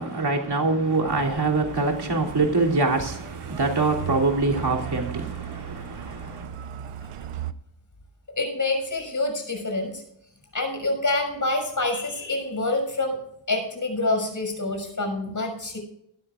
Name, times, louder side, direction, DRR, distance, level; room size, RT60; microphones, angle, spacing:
voice 1, 0.0-6.5, right 3 dB, 50° right, 3.1 m, -24 dB
Truck, 1.1-7.5, right 11 dB, 90° right, 0.8 m, -37 dB
voice 2, 8.4-10.0 10.5-13.2 13.5-15.8, left 2 dB, 40° left, 6.2 m, -26 dB
18.5 x 13.0 x 2.5 m
wide cardioid pair, 85°, 49 cm